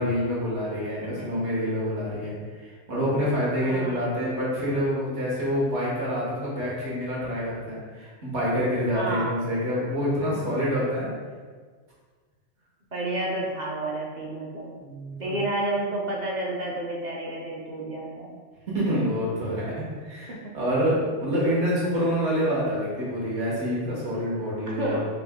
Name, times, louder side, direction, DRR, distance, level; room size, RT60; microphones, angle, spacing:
voice 1, 0.0-11.1 14.8-15.3 18.7-25.0, equal, 70° right, -6 dB, 1.6 m, -27 dB
voice 2, 3.6-4.1 8.9-9.3 12.9-14.7 15.2-18.3 20.3-20.5 24.7-25.1, right 1 dB, 50° right, -2 dB, 0.6 m, -30 dB
4.1 x 2.8 x 3.4 m, 1.5 s
omnidirectional pair, 1.2 m